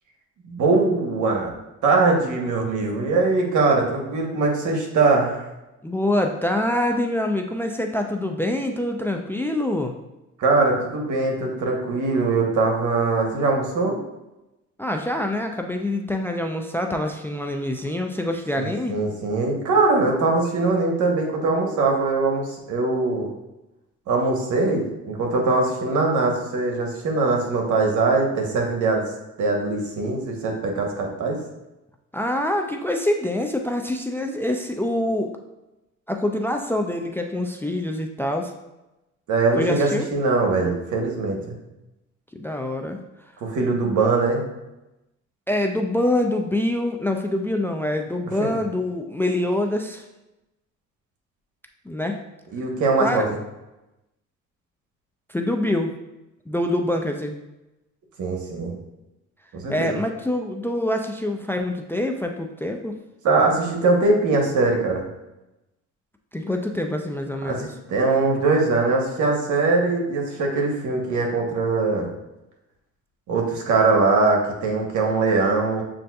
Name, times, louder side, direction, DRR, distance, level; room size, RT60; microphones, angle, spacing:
voice 1, 0.4-1.5 1.8-5.4 10.4-14.0 18.6-23.3 24.1-29.0 29.4-31.4 39.3-41.6 43.4-44.4 48.4-48.5 52.5-53.2 58.2-58.7 59.5-60.0 63.2-65.0 67.4-72.1 73.3-75.8, right 3 dB, 75° right, 1 dB, 1.0 m, -21 dB
voice 2, 5.8-9.9 14.8-18.9 32.1-35.3 36.1-38.5 39.5-40.1 42.3-43.0 44.0-44.2 45.5-50.0 51.9-52.2 53.0-53.3 55.3-55.9 56.5-57.4 59.7-62.9 66.3-67.8, left 1 dB, 10° left, 4 dB, 0.3 m, -25 dB
7.4 x 2.6 x 2.3 m, 0.97 s
cardioid pair, 90°, 30 cm